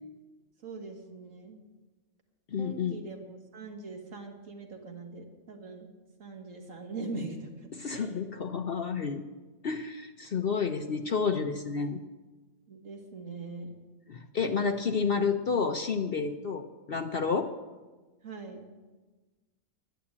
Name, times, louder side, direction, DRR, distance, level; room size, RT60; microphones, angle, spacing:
voice 1, 0.6-1.6 2.6-5.9 6.2-7.5 7.9-8.1 12.7-13.7 18.2-18.7, right 3 dB, 65° right, 2 dB, 2.2 m, -41 dB
voice 2, 2.5-3.0 7.7-9.2 9.6-12.0 14.1-17.5, left 5 dB, 50° left, 7 dB, 0.8 m, -30 dB
11.5 x 9.9 x 8.5 m, 1.2 s
omnidirectional pair, 1.5 m